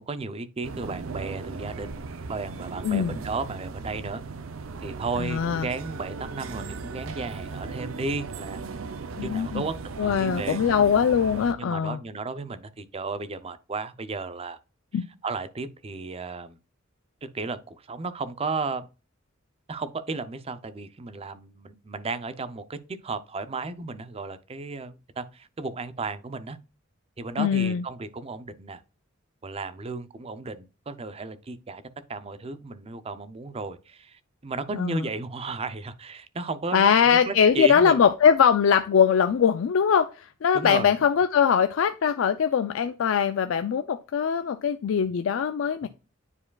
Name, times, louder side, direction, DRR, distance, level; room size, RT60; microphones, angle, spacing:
voice 1, 0.0-4.2 4.8-8.7 9.2-10.6 11.5-14.6 15.2-16.6 17.2-18.9 19.7-26.6 27.2-28.8 29.4-31.8 32.1-38.0 40.5-40.9 45.8-45.9, right 3 dB, 30° right, 0.5 m, -34 dB
sound 1, 0.6-11.5, right 4 dB, 85° right, 0.5 m, -37 dB
voice 2, 2.8-3.2 5.2-5.7 9.2-9.6 10.0-12.0 14.9-15.1 27.4-27.8 34.8-35.1 36.7-45.9, left 7 dB, 75° left, 0.4 m, -22 dB
9.7 x 4.6 x 2.3 m
head